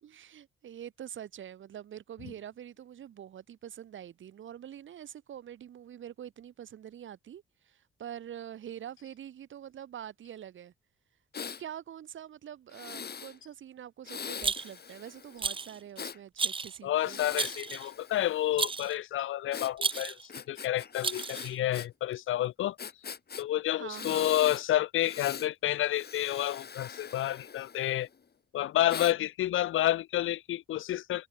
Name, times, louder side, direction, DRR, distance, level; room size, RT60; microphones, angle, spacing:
voice 1, 0.0-10.7 11.6-17.2 23.7-24.4, right 10 dB, 70° right, 2.4 m, -45 dB
Breathing, 11.3-11.6 12.7-13.3 14.0-16.2 16.9-18.6 19.5-21.9 22.1-22.2 22.8-23.4 23.9-24.6 25.0-25.5 25.9-28.1 28.9-29.1, left 6 dB, 50° left, 3.5 m, -42 dB
Rattle, 14.4-14.9 15.4-15.8 16.4-16.8 17.4-17.9 18.6-19.0 19.8-20.3 21.0-21.6, right 5 dB, 25° right, 0.5 m, -32 dB
voice 2, 16.8-20.2 20.5-22.8 23.4-28.1 28.5-31.3, left 13 dB, 80° left, 1.1 m, -29 dB
supercardioid pair, 60°, 20 cm